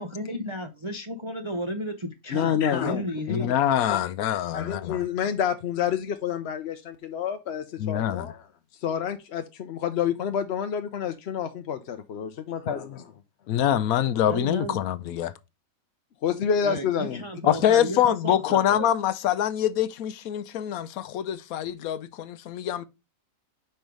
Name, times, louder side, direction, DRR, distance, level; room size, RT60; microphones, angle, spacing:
voice 1, 0.0-3.5 14.2-14.8 16.3-18.9, equal, 30° right, 0.6 m, -34 dB
voice 2, 2.3-3.0 3.3-3.4 3.9-4.0 4.5-8.4 8.8-13.1 16.2-17.2, left 8 dB, 60° left, 0.8 m, -28 dB
voice 3, 3.3-5.1 7.8-8.3 13.5-15.3 17.4-22.9, left 11 dB, 80° left, 1.0 m, -25 dB
5.5 x 4.6 x 5.1 m
omnidirectional pair, 1.5 m